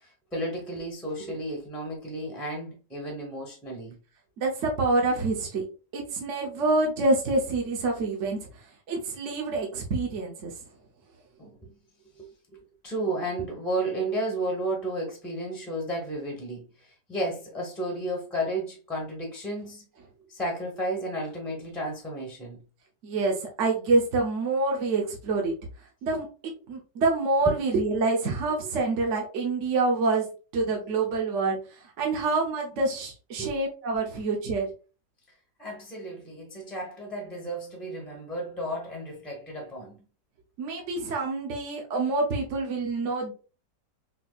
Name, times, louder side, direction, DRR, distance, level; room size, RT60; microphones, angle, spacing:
voice 1, 0.0-4.0 11.4-11.7 12.2-12.3 12.8-19.8 20.3-22.6 33.4-33.5 35.6-40.0, right 1 dB, ahead, 0.6 m, -33 dB
voice 2, 4.4-5.6 5.9-8.4 8.9-10.5 23.0-25.5 26.0-30.3 30.5-31.6 32.0-34.7 40.6-43.3, right 3 dB, 55° right, 0.9 m, -26 dB
4.3 x 2.8 x 2.3 m
omnidirectional pair, 1.9 m